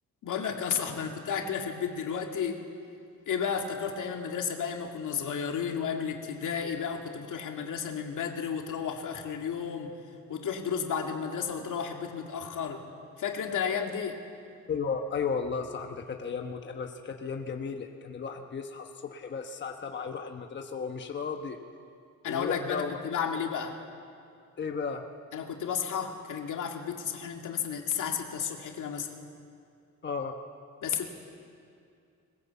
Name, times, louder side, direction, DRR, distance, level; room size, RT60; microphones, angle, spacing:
voice 1, 0.2-2.6 3.3-9.9 10.3-12.9 13.2-14.2 22.2-23.8 25.3-29.1 30.8-31.1, left 7 dB, 80° left, 2 dB, 2.3 m, -32 dB
voice 2, 14.7-21.6 22.2-23.0 24.6-25.0 30.0-30.4, left 5 dB, 35° left, 4 dB, 1.1 m, -34 dB
21.0 x 20.5 x 8.3 m, 2.4 s
wide cardioid pair, 150°, 30 cm